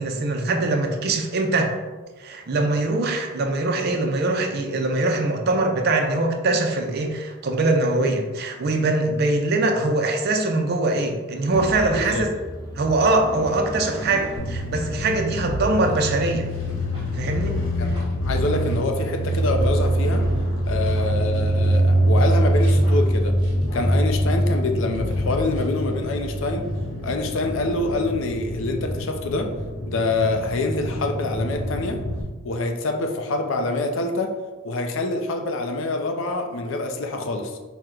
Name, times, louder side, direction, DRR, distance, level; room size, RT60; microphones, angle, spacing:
voice 1, 0.0-1.8 2.2-12.3 12.7-16.5 17.1-17.6, right 2 dB, 50° right, 4 dB, 0.4 m, -22 dB
Motorcycle, 11.5-23.6, equal, 20° left, 0.7 m, -39 dB
voice 2, 11.9-12.2 17.8-17.9 18.2-20.2 20.7-23.3 23.7-26.7 27.0-29.5 29.9-32.0 32.4-34.3 34.6-37.6, left 2 dB, 60° left, 5 dB, 0.4 m, -26 dB
sound 1, 14.4-32.2, right 1 dB, 80° left, 0.9 m, -24 dB
sound 2, 15.3-21.9 22.2-24.7 24.9-26.0, left 1 dB, 20° right, 1.0 m, -34 dB
4.3 x 2.1 x 3.7 m, 1.3 s
head